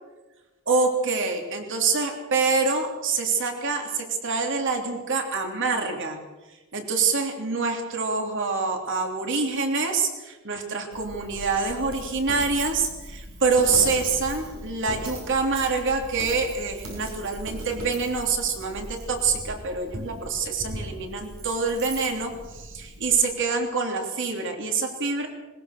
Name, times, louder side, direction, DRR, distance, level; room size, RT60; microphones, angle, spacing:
voice 1, 0.7-6.2 6.7-25.3, right 4 dB, 60° right, 3 dB, 3.2 m, -26 dB
Coin (dropping), 10.9-23.2, right 1 dB, 90° right, 6.3 m, -38 dB
21.0 x 20.0 x 6.8 m, 1.1 s
head